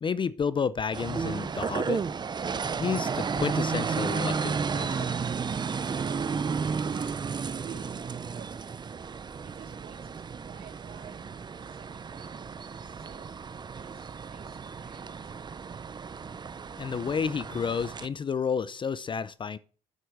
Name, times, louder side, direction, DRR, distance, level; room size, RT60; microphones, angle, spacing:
voice 1, 0.0-2.0 2.7-5.1 16.8-19.6, left 6 dB, 30° left, 0.5 m, -31 dB
sound 1, 0.9-18.1, right 5 dB, 25° right, 0.6 m, -33 dB
voice 2, 6.0-7.2 7.6-7.9 8.3-8.7 9.4-13.4 13.8-15.3, right 8 dB, 60° right, 2.8 m, -51 dB
8.1 x 7.8 x 6.4 m
cardioid pair, 110°, 17 cm